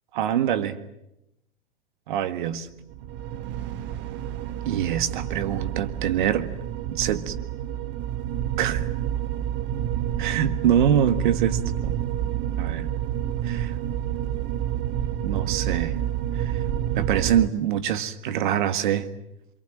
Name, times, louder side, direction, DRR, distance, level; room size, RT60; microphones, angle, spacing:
voice 1, 0.1-0.8 2.1-2.7 4.6-6.5 6.9-7.3 8.6-8.8 10.2-12.0 12.6-12.9 13.4-13.8 15.2-15.9 16.3-16.6 16.9-19.1, right 10 dB, 55° right, 11 dB, 1.7 m, -24 dB
sound 1, 2.9-17.5, right 10 dB, 40° right, 1.4 m, -29 dB
27.5 x 23.0 x 9.0 m, 0.85 s
figure-of-eight pair, 95°, 29 cm